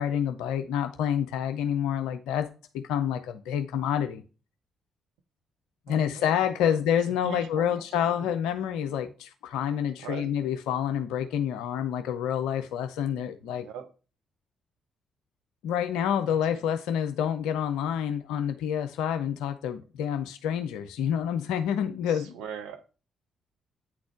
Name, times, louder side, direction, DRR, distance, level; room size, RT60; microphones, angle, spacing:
voice 1, 0.0-2.5 2.7-4.2 5.9-13.7 15.6-22.3, left 9 dB, 70° left, 0.4 m, -28 dB
voice 2, 5.9-6.4 6.7-6.8 7.2-8.2 10.0-10.3 13.5-13.9 16.5-16.7 22.0-22.9, right 7 dB, 70° right, 0.8 m, -41 dB
8.8 x 4.2 x 4.4 m
figure-of-eight pair, 40°, 0 cm